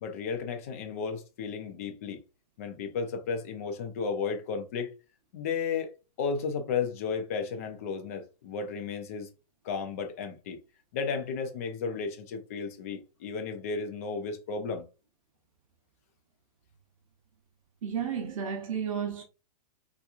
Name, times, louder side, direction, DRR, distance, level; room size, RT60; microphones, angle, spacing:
voice 1, 0.0-2.2 2.6-4.9 5.3-5.9 6.2-9.3 9.6-10.6 10.9-14.8, left 5 dB, 20° left, 0.3 m, -33 dB
voice 2, 17.8-19.2, right 7 dB, 50° right, 0.9 m, -32 dB
3.6 x 2.9 x 2.3 m
hypercardioid pair, 175°, 21 cm